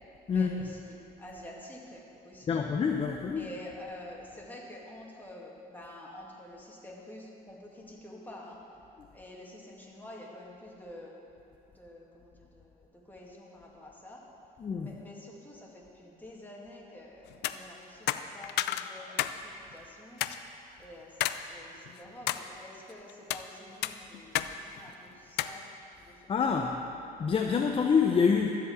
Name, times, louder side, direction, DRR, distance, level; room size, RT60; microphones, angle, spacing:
voice 1, 0.2-2.6 3.4-8.6 9.1-11.1 11.7-14.2 14.8-20.2 20.8-25.7 26.0-26.7, left 1 dB, 10° left, -3 dB, 2.2 m, -48 dB
voice 2, 2.5-3.5 14.6-14.9 26.3-26.7 27.2-28.5, left 6 dB, 35° left, 2 dB, 0.7 m, -26 dB
sound 1, 17.3-17.6 18.1-19.4 19.7-19.8 20.2-20.4 21.2-21.4 21.9-22.4 23.1-23.4 23.8-24.5 24.8-24.9 25.4-25.6, left 13 dB, 80° left, 0.5 m, -31 dB
13.5 x 5.0 x 8.0 m, 2.7 s
cardioid pair, 110°, 17 cm